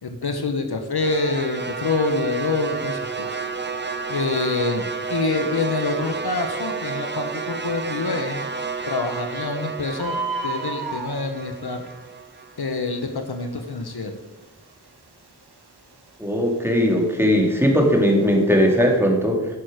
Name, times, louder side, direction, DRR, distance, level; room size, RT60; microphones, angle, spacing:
voice 1, 0.0-3.4 4.1-8.5 8.9-10.2 10.4-11.9 12.6-14.1, left 3 dB, 70° left, 6 dB, 1.0 m, -26 dB
sound 1, 1.0-13.2, right 5 dB, 30° right, 0.8 m, -31 dB
Bird, 2.6-19.0, right 3 dB, 80° right, 1.6 m, -38 dB
voice 2, 16.2-19.5, equal, 5° right, 0 dB, 2.2 m, -19 dB
10.5 x 6.3 x 5.0 m, 1.1 s
wide cardioid pair, 45°, 39 cm